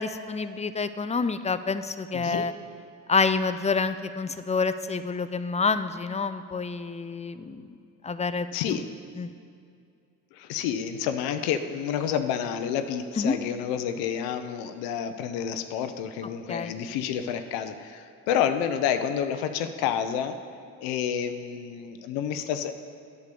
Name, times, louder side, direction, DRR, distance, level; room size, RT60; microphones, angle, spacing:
voice 1, 0.0-2.5 3.1-7.7 8.0-8.8 9.2-9.3 13.2-13.4 16.5-16.7, left 4 dB, 20° left, 12 dB, 0.5 m, -28 dB
voice 2, 2.1-2.5 8.5-8.8 10.3-20.4 20.8-22.7, left 8 dB, 90° left, 8 dB, 0.6 m, -29 dB
8.4 x 6.9 x 6.7 m, 2.4 s
supercardioid pair, 65°, 36 cm